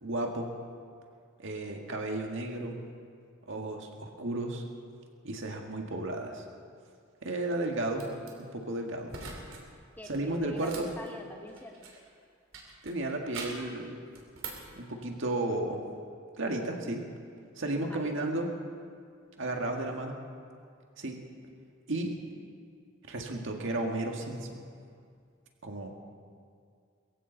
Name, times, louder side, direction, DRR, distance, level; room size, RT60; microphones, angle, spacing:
voice 1, 0.0-0.6 1.4-2.8 3.5-4.6 5.2-6.4 7.2-8.1 8.4-9.1 10.1-10.9 12.8-14.0 14.8-15.8 16.4-17.0 17.6-18.5 19.4-20.2 21.0-21.2 21.9-22.2 23.1-24.6 25.6-25.9, right 2 dB, 65° right, 2 dB, 1.9 m, -33 dB
sound 1, 7.9-8.3 9.1-9.6 9.9-12.1 12.5-13.7 14.1-14.7, right 4 dB, 90° right, 2.9 m, -44 dB
voice 2, 10.0-11.9 17.8-18.3, left 1 dB, 10° left, 1 dB, 1.7 m, -46 dB
22.0 x 15.0 x 4.0 m, 2.2 s
head